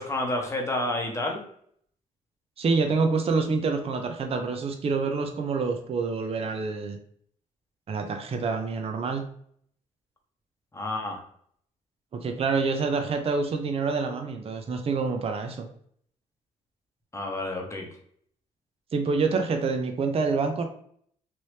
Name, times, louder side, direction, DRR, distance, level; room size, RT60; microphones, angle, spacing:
voice 1, 0.0-1.4 10.7-11.2 17.1-17.9, left 1 dB, 20° left, 1 dB, 1.0 m, -29 dB
voice 2, 2.6-7.0 7.9-9.2 12.1-15.7 18.9-20.6, right 4 dB, 45° right, 4 dB, 0.6 m, -27 dB
3.1 x 2.7 x 3.2 m, 0.63 s
cardioid pair, 85°, 14 cm